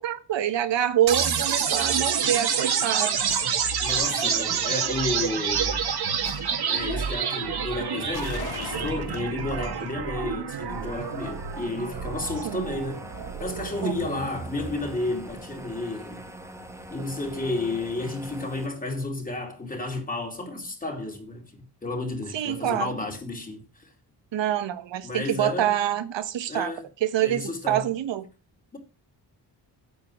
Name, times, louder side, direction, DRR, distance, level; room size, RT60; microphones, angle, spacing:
voice 1, 0.0-3.2 12.4-12.7 13.8-13.9 22.3-22.9 24.3-26.7 27.0-28.2, right 11 dB, 85° right, 1.2 m, -26 dB
sound 1, 1.1-15.1, right 7 dB, 60° right, 1.9 m, -28 dB
sound 2, 3.3-4.9 6.2-7.2 8.1-9.9 10.3-10.4, left 10 dB, 60° left, 0.9 m, -41 dB
voice 2, 3.8-5.9 6.7-13.0 13.4-16.3 16.9-21.4 21.8-23.9 25.0-25.7 26.5-26.9 27.2-27.9 28.7-28.8, left 2 dB, 20° left, 2.9 m, -32 dB
sound 3, 10.7-18.7, right 1 dB, 5° right, 1.4 m, -43 dB
9.5 x 7.6 x 6.3 m
wide cardioid pair, 160°, 43 cm